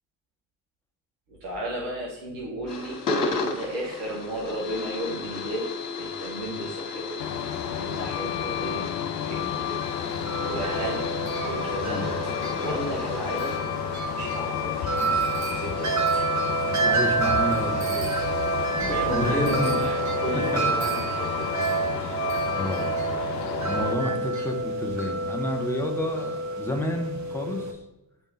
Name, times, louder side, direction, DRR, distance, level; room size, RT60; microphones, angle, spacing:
voice 1, 1.3-5.7 6.0-7.2 7.6-8.9 9.3-9.7 10.1-11.1 11.4-12.1 12.6-13.6 14.1-14.9 15.5-16.3 18.5-21.5, right 1 dB, 70° right, -4 dB, 1.5 m, -34 dB
sound 1, 2.7-13.6, left 4 dB, 40° left, 1.8 m, -34 dB
Truck, 7.2-23.9, left 10 dB, 80° left, 0.6 m, -31 dB
Wind chime, 9.8-27.7, right 4 dB, 35° right, 1.2 m, -28 dB
voice 2, 11.8-12.1 15.0-15.3 16.7-18.4 19.1-19.7 20.3-20.9 21.5-21.7 22.5-22.9 23.4-27.8, left 1 dB, 5° left, 2 dB, 1.3 m, -31 dB
9.3 x 3.5 x 4.2 m, 0.95 s
figure-of-eight pair, 50°, 49 cm